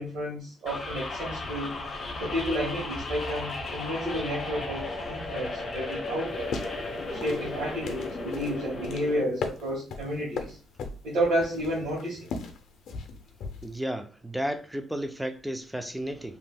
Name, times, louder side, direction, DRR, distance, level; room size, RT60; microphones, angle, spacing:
voice 1, 0.0-1.7 2.2-6.5 7.1-10.6 11.0-12.3, equal, 70° right, 1.4 m, -31 dB
sound 1, 0.6-9.2, left 2 dB, 40° left, 1.1 m, -35 dB
sound 2, 6.3-13.8, left 4 dB, 70° left, 0.5 m, -39 dB
voice 2, 13.6-16.4, equal, 5° right, 0.3 m, -33 dB
3.5 x 2.7 x 2.2 m
cardioid pair, 150°, 0 cm